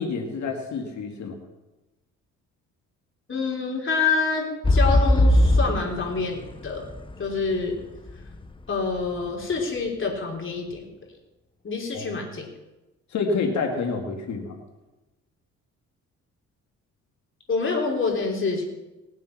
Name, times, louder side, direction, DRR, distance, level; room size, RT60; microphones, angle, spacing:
voice 1, 0.0-1.4 11.9-12.2 13.1-14.6, left 4 dB, 70° left, 2 dB, 2.3 m, -28 dB
voice 2, 3.3-6.9 7.2-7.8 8.7-10.9 11.6-12.5 17.5-18.6, left 4 dB, 40° left, 0 dB, 3.6 m, -27 dB
sound 1, 4.6-8.5 9.1-9.2, left 1 dB, 15° left, 0.9 m, -20 dB
20.0 x 7.5 x 5.9 m, 1.1 s
cardioid pair, 90°, 30 cm